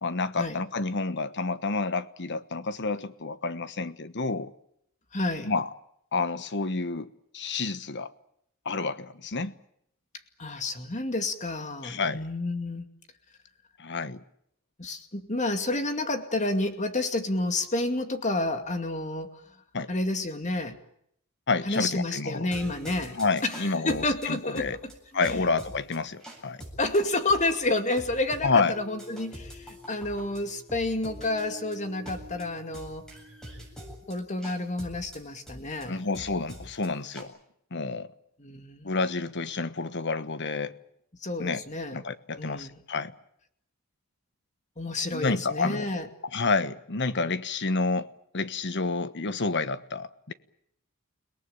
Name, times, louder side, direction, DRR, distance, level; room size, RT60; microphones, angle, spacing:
voice 1, 0.0-4.5 5.4-5.7 6.1-8.1 8.6-9.5 11.8-12.2 13.8-14.2 19.7-19.9 21.5-22.5 23.1-24.8 25.1-26.6 28.4-28.7 35.9-37.3 37.7-38.1 38.8-40.7 41.4-41.6 41.9-43.1 45.1-45.9 46.3-50.3, left 3 dB, 50° left, 1.2 m, -29 dB
voice 2, 5.1-5.5 10.4-12.9 14.8-19.4 19.9-20.8 21.7-24.9 25.2-25.4 26.8-33.0 34.1-36.0 38.4-38.9 41.2-42.0 42.4-42.7 44.8-46.1, left 2 dB, 35° left, 2.4 m, -30 dB
sound 1, 22.5-37.2, equal, 5° left, 8.0 m, -45 dB
29.5 x 18.5 x 9.0 m
head